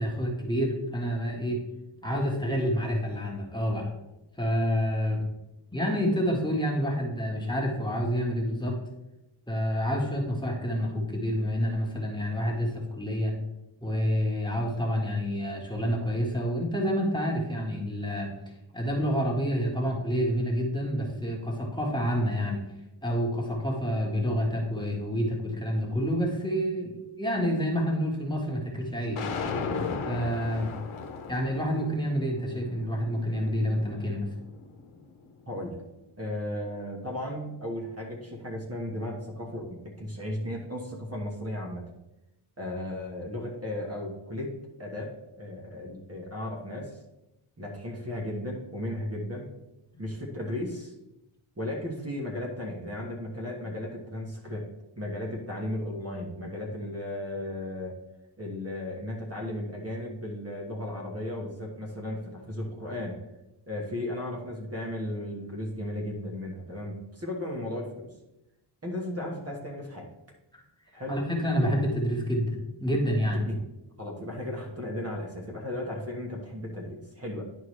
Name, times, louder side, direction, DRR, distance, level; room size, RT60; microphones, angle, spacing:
voice 1, 0.0-1.6 2.0-3.9 4.4-5.2 5.7-8.8 9.5-13.3 13.8-18.3 18.7-22.6 23.0-29.3 30.0-30.7 31.3-34.3 49.9-50.0 70.5-70.6 71.1-73.4, equal, 10° left, -2 dB, 1.6 m, -28 dB
sound 1, 29.2-35.3, left 4 dB, 75° left, 1.0 m, -37 dB
voice 2, 35.5-35.8 36.2-41.8 42.6-47.0 47.6-49.5 50.0-50.9 51.6-54.7 55.0-58.0 58.4-63.2 63.7-68.1 68.8-70.1 70.9-71.2 73.3-73.6 74.0-77.4, left 1 dB, 30° right, -1 dB, 1.3 m, -35 dB
10.5 x 4.6 x 3.2 m, 0.93 s
wide cardioid pair, 95°, 50 cm